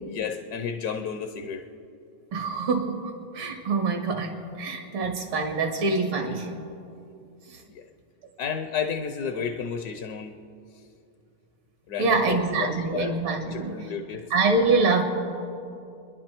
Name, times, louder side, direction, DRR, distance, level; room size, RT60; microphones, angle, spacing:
voice 1, 0.1-1.6 7.7-7.9 8.4-10.4 11.9-13.2 13.4-14.3, left 7 dB, 65° left, 7 dB, 1.0 m, -32 dB
voice 2, 2.3-6.5 12.0-13.8 14.3-15.0, right 3 dB, 80° right, 3 dB, 2.6 m, -25 dB
30.0 x 11.0 x 4.4 m, 2.6 s
omnidirectional pair, 2.2 m